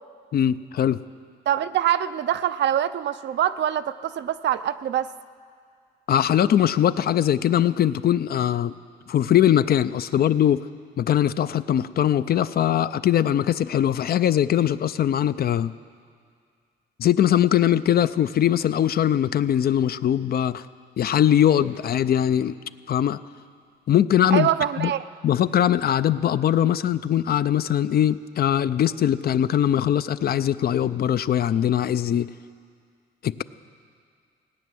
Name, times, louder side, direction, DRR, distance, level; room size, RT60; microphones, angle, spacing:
voice 1, 0.3-1.0 6.1-8.7 9.1-10.6 11.0-15.7 17.0-20.6 21.0-22.6 22.9-23.2 23.9-24.5 24.8-24.9 25.2-32.3 33.2-33.4, left 10 dB, 50° left, 14 dB, 0.5 m, -21 dB
voice 2, 1.5-5.1 24.3-25.0, right 11 dB, 60° right, 12 dB, 0.6 m, -24 dB
18.0 x 9.5 x 7.7 m, 2.1 s
cardioid pair, 90°, 20 cm